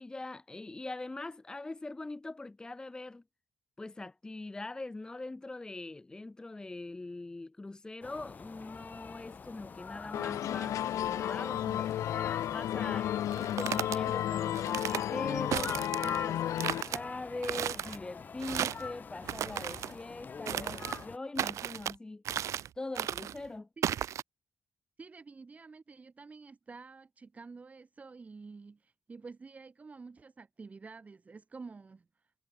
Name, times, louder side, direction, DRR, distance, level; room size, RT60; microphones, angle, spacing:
voice 1, 0.0-3.2 3.8-11.9 12.5-22.2 22.8-23.7, left 2 dB, 15° left, 1.0 m, -42 dB
sound 1, 8.0-21.2, left 5 dB, 35° left, 0.9 m, -45 dB
sound 2, 10.1-16.8, left 11 dB, 85° left, 0.9 m, -33 dB
sound 3, 13.3-14.0 14.5-15.0 15.5-16.2 16.6-17.0 17.4-18.0 18.4-18.9 19.2-19.9 20.5-21.0 21.4-21.9 22.2-22.7 22.9-23.4 23.8-24.2, right 10 dB, 75° right, 0.9 m, -34 dB
voice 2, 25.0-32.1, right 4 dB, 25° right, 3.6 m, -49 dB
cardioid pair, 140°, 5 cm